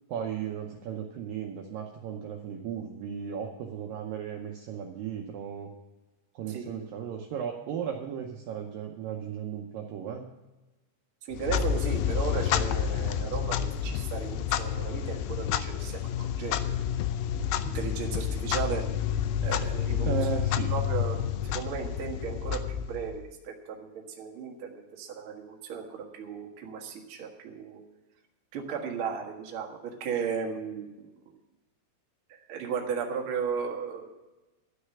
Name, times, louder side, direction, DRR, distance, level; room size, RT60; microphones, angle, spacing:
voice 1, 0.1-5.7 6.4-10.2 20.1-20.7, right 8 dB, 80° right, 2 dB, 2.0 m, -35 dB
voice 2, 11.2-17.0 17.6-18.8 19.4-20.2 20.7-27.8 28.5-31.3 32.3-34.1, right 6 dB, 55° right, 1 dB, 1.5 m, -35 dB
Clock, 11.3-23.3, left 9 dB, 80° left, 2.3 m, -29 dB
12.5 x 6.5 x 8.5 m, 1.1 s
omnidirectional pair, 5.1 m